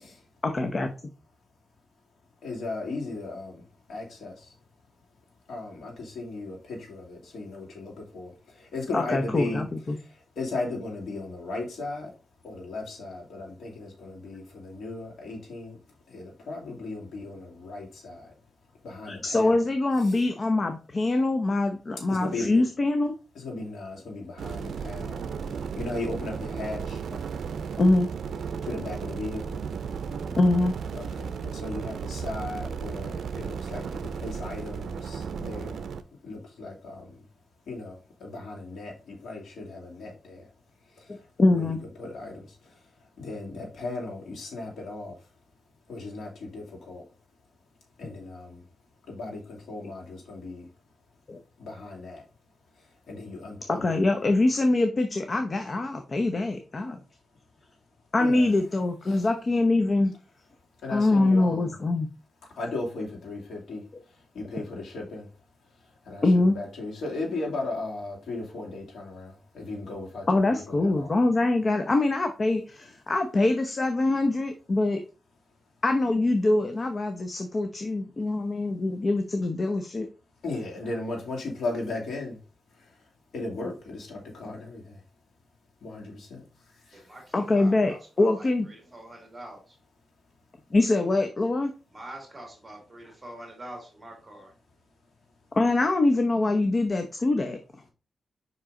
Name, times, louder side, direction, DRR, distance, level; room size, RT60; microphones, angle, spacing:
voice 1, 0.4-0.9 8.9-10.0 19.1-23.1 27.8-28.1 30.4-30.7 41.4-41.8 51.3-51.4 53.7-57.0 58.1-60.1 60.9-62.1 66.2-66.6 70.3-75.0 75.8-80.1 87.3-88.7 90.7-91.7 95.6-97.6, left 2 dB, 40° left, 0.7 m, -24 dB
voice 2, 2.4-3.6 3.9-4.5 5.5-9.6 9.9-12.1 12.4-15.8 16.1-18.3 18.8-19.6 20.0-20.2 22.1-22.6 23.3-27.0 28.6-29.6 30.9-35.8 36.2-37.2 37.7-40.5 40.9-41.2 41.5-42.8 43.2-45.2 45.9-47.0 48.0-48.6 49.1-50.7 51.6-52.2 53.1-53.9 58.2-58.5 59.1-59.3 60.8-61.7 62.5-65.3 66.0-71.1 80.4-82.4 82.8-82.9 83.3-85.0 85.8-86.4 86.9-87.1, left 2 dB, 80° left, 2.5 m, -36 dB
sound 1, 24.4-36.0, right 6 dB, 80° right, 0.5 m, -34 dB
voice 3, 88.9-89.6 91.9-94.5, right 1 dB, 25° right, 2.3 m, -43 dB
5.5 x 4.8 x 3.8 m
cardioid pair, 90°, 0 cm